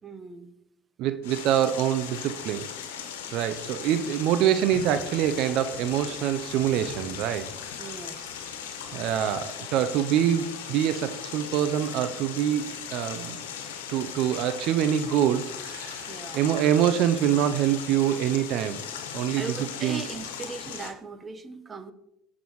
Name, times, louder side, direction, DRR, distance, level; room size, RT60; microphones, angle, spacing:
voice 1, 0.0-0.5 7.8-8.5 16.0-16.4 19.4-21.9, right 4 dB, 30° right, 9 dB, 1.2 m, -39 dB
voice 2, 1.0-2.7 3.3-7.5 8.9-13.4 13.9-18.8 19.1-19.4 19.8-20.0, right 10 dB, 65° right, 11 dB, 0.6 m, -25 dB
sound 1, 1.2-20.9, left 8 dB, 85° left, 1.3 m, -38 dB
17.0 x 6.1 x 3.1 m, 0.78 s
hypercardioid pair, 75°, 0 cm